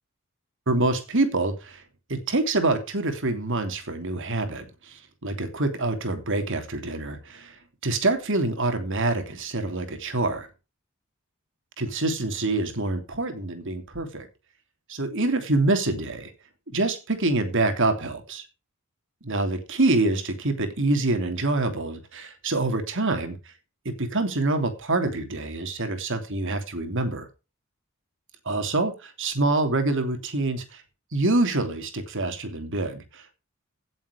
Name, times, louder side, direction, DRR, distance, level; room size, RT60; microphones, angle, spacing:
voice 1, 0.7-1.8 2.1-7.5 7.8-10.5 11.8-14.3 14.9-16.3 16.7-18.4 19.2-23.4 23.8-27.3 28.4-30.8 31.1-33.3, right 2 dB, 60° right, 3.0 m, -26 dB
17.0 x 7.6 x 5.1 m
head